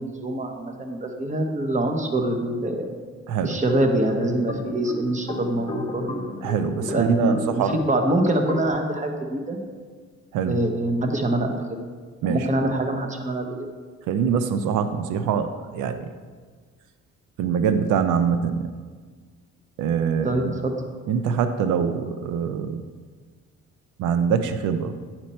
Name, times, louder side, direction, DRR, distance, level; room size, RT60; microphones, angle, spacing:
voice 1, 0.0-3.0 3.4-6.2 6.8-9.6 10.5-11.8 12.2-13.7 20.2-20.7, right 1 dB, 25° right, 3 dB, 1.0 m, -25 dB
voice 2, 3.3-3.6 6.4-7.7 10.3-10.6 12.2-12.5 14.1-16.1 17.4-18.7 19.8-20.5 21.1-22.8 24.0-25.0, right 7 dB, 90° right, 9 dB, 0.5 m, -24 dB
sound 1, 3.5-8.7, left 1 dB, 15° left, 0.9 m, -34 dB
9.4 x 4.4 x 4.3 m, 1.5 s
cardioid pair, 90°, 30 cm